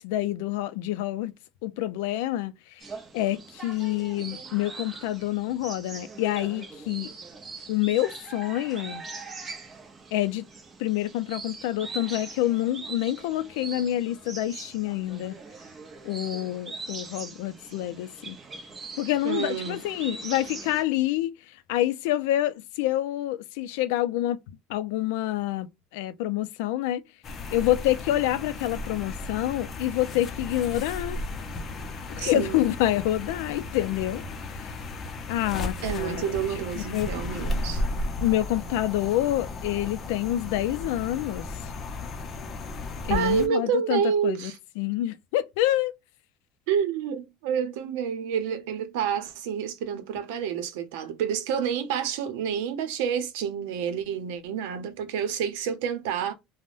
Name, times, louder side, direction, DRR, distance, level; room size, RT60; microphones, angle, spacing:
voice 1, 0.0-1.3 1.6-2.6 3.1-7.1 7.7-9.0 10.1-10.5 10.8-15.4 16.0-18.4 19.0-21.4 21.7-24.4 24.7-25.7 25.9-27.0 27.5-31.2 32.1-34.2 34.6-34.7 35.3-36.3 36.7-37.1 38.2-41.5 43.0-45.9, left 14 dB, 85° left, 0.4 m, -27 dB
sound 1, 2.8-20.8, right 4 dB, 20° right, 0.6 m, -42 dB
voice 2, 19.2-19.8 32.2-32.7 35.8-37.8 43.1-44.6 46.7-56.3, right 7 dB, 85° right, 0.7 m, -28 dB
sound 2, 27.2-43.5, left 2 dB, 30° left, 0.6 m, -35 dB
3.4 x 2.1 x 2.4 m
cardioid pair, 145°, 0 cm